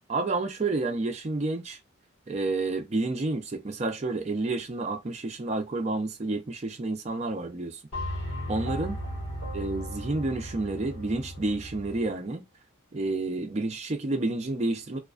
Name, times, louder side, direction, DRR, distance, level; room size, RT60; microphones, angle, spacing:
voice 1, 0.1-1.8 2.3-7.8 8.5-9.0 9.5-12.4 12.9-15.0, right 2 dB, 35° right, 0.4 m, -30 dB
sound 1, 7.9-12.1, equal, 85° left, 1.1 m, -36 dB
2.3 x 2.2 x 2.4 m
head